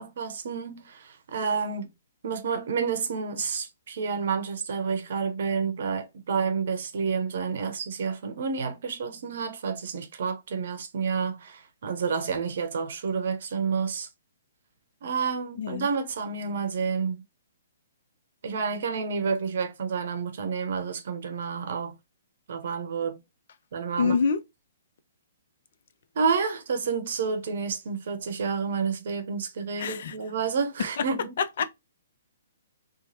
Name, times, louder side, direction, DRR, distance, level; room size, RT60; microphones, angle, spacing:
voice 1, 0.0-1.9 2.2-14.1 15.0-17.2 18.4-22.0 22.5-23.2 23.7-24.1 26.1-31.4, right 5 dB, 60° right, 0.7 m, -29 dB
voice 2, 15.6-15.9 24.0-24.4 29.8-30.1 31.6-31.7, left 5 dB, 60° left, 0.5 m, -25 dB
3.0 x 2.2 x 2.7 m
hypercardioid pair, 130°, 0 cm